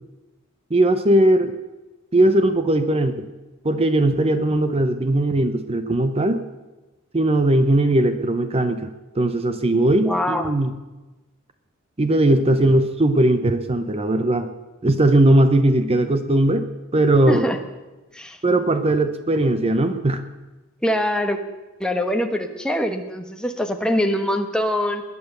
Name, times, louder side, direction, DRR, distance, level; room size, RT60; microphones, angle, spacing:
voice 1, 0.7-1.5 2.1-3.3 3.6-6.4 7.1-8.9 9.1-10.7 12.0-14.5 14.8-16.7 16.9-17.5 18.4-20.2, right 1 dB, 25° right, 9 dB, 0.8 m, -19 dB
voice 2, 10.0-10.5 17.3-17.6 18.1-18.4 20.8-21.4 21.8-25.0, left 1 dB, 5° left, 5 dB, 1.2 m, -23 dB
20.5 x 9.5 x 6.8 m, 1.1 s
head